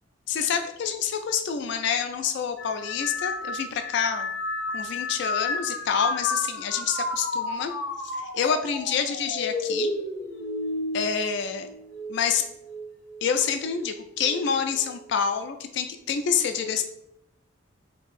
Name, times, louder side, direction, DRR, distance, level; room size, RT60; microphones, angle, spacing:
voice 1, 0.3-4.3 4.7-7.7 8.0-9.9 10.9-11.7 12.1-12.4 13.2-16.8, left 7 dB, 60° left, 7 dB, 0.3 m, -27 dB
sound 1, 2.6-12.2 12.6-13.2 14.2-14.5, left 2 dB, 85° left, 0.7 m, -32 dB
4.5 x 2.7 x 2.4 m, 0.79 s
head